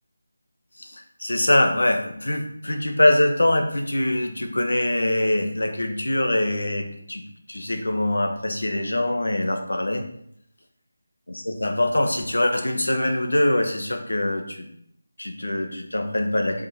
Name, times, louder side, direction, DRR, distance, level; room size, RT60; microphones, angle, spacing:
voice 1, 0.8-10.1 11.3-14.7 15.2-16.7, left 1 dB, 80° left, 4 dB, 1.7 m, -23 dB
7.5 x 6.1 x 4.3 m, 0.69 s
figure-of-eight pair, 165°, 0 cm